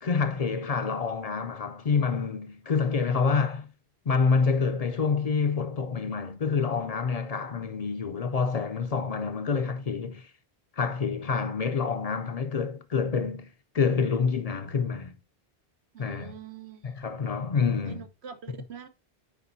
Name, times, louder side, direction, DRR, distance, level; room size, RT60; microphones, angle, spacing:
voice 1, 0.0-3.7 4.1-10.3 10.8-15.2 16.0-16.3 16.8-18.1, left 5 dB, 45° left, 0.5 m, -27 dB
voice 2, 3.0-3.3 15.9-17.0 17.8-18.9, right 7 dB, 90° right, 1.2 m, -44 dB
8.3 x 5.0 x 2.6 m
omnidirectional pair, 1.1 m